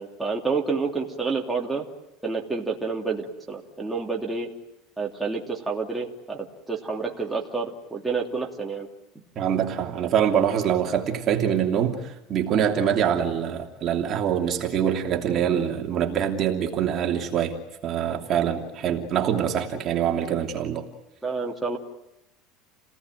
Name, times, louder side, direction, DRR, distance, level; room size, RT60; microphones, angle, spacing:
voice 1, 0.0-1.8 2.2-4.5 5.0-8.9 21.2-21.8, right 4 dB, 5° right, 3.2 m, -29 dB
voice 2, 9.3-17.6 17.8-20.9, right 8 dB, 35° right, 3.0 m, -24 dB
30.0 x 19.0 x 9.2 m
cardioid pair, 150°, 0 cm